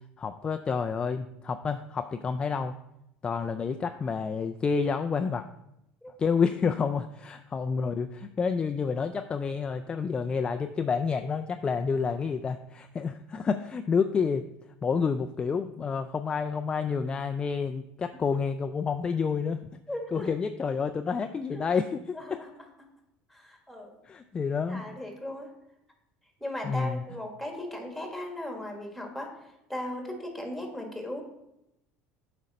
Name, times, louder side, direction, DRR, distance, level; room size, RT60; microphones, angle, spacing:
voice 1, 0.2-2.7 3.2-5.4 6.2-14.5 14.8-19.7 20.1-22.4 24.0-24.8 26.6-27.0, left 5 dB, 25° left, 7 dB, 0.3 m, -29 dB
voice 2, 19.9-20.3 21.5-21.6 22.1-22.5 22.8-22.9 23.3-24.0 24.7-25.5 26.4-29.3 29.7-31.2, left 1 dB, ahead, 2 dB, 1.7 m, -37 dB
7.6 x 5.1 x 4.1 m, 0.84 s
supercardioid pair, 120°, 4 cm